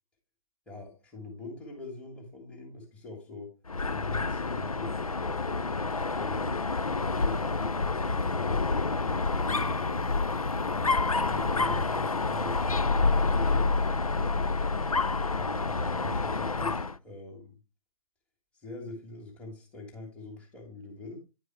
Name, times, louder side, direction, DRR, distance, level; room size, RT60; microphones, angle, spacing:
voice 1, 0.7-3.6 3.9-4.9 5.2-6.6 7.1-10.1 10.7-14.5 15.3-17.6 18.5-21.2, left 3 dB, 5° left, 2.0 m, -43 dB
Dog, 3.7-17.0, left 3 dB, 80° left, 0.8 m, -28 dB
10.0 x 4.7 x 4.5 m
figure-of-eight pair, 135°, 18 cm